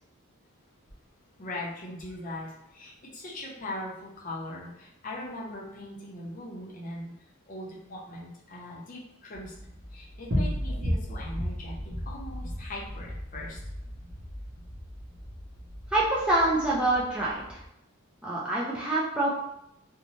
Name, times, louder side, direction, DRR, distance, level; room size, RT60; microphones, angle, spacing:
voice 1, 1.4-7.1 7.5-9.6 9.9-13.6, left 1 dB, 40° left, -3 dB, 0.6 m, -40 dB
sound 1, 9.3-17.7, equal, 55° right, 0.9 m, -35 dB
voice 2, 15.9-17.6 18.2-19.3, right 2 dB, 5° right, -7 dB, 0.3 m, -26 dB
2.6 x 2.1 x 3.0 m, 0.80 s
head